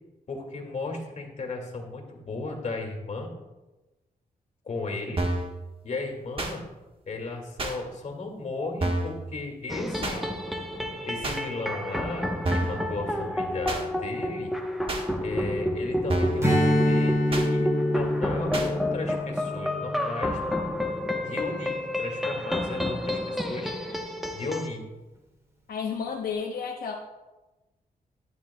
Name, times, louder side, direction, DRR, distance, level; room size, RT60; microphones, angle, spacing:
voice 1, 0.3-3.3 4.6-5.2 5.8-6.6 7.1-10.3 11.0-14.5 15.2-20.4 21.2-24.0 24.3-24.8, left 3 dB, 50° left, 1 dB, 1.9 m, -35 dB
sound 1, 5.2-5.5 6.4-6.5 7.6-7.8 8.8-9.2 10.0-10.2 11.2-11.4 12.4-12.8 13.7-13.8 14.9-15.0 16.1-16.4 17.3-17.5 18.5-18.7, right 2 dB, 40° right, 1.3 m, -28 dB
sound 2, 9.7-24.7, left 1 dB, ahead, 0.9 m, -30 dB
Strum, 16.4-21.2, left 1 dB, 20° right, 3.0 m, -27 dB
voice 2, 25.7-26.9, left 6 dB, 85° left, 0 dB, 0.9 m, -32 dB
12.5 x 9.5 x 2.2 m, 1.1 s
cardioid pair, 90°, 15 cm